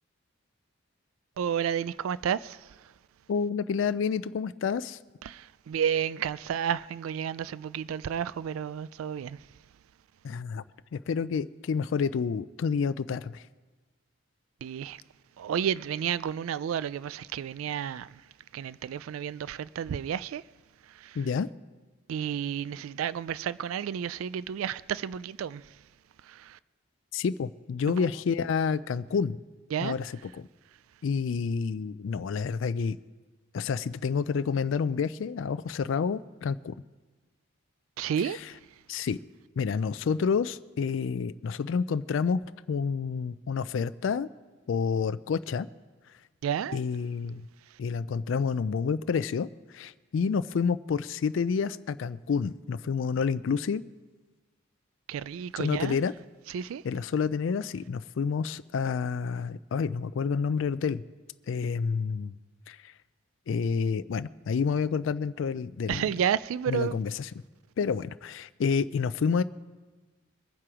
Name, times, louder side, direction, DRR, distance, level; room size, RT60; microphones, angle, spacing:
voice 1, 1.4-2.6 5.2-9.4 14.6-15.0 15.4-18.1 18.5-20.4 21.0-21.2 22.1-25.6 26.3-26.6 27.9-28.1 29.7-29.9 38.0-38.4 46.4-46.8 55.1-56.0 56.5-56.8 65.9-67.0, right 8 dB, 85° right, 0.3 m, -31 dB
voice 2, 3.3-5.0 10.2-10.6 10.9-13.4 21.2-21.5 27.1-29.4 29.8-30.4 31.0-33.0 33.5-36.7 38.2-38.5 38.9-39.2 39.6-42.4 42.7-44.3 44.7-45.7 46.7-47.4 47.8-53.8 55.6-56.1 56.8-61.0 61.5-62.3 62.7-62.9 63.5-66.1 66.7-67.3 67.8-69.4, left 5 dB, 65° left, 0.4 m, -29 dB
22.5 x 7.6 x 4.9 m
head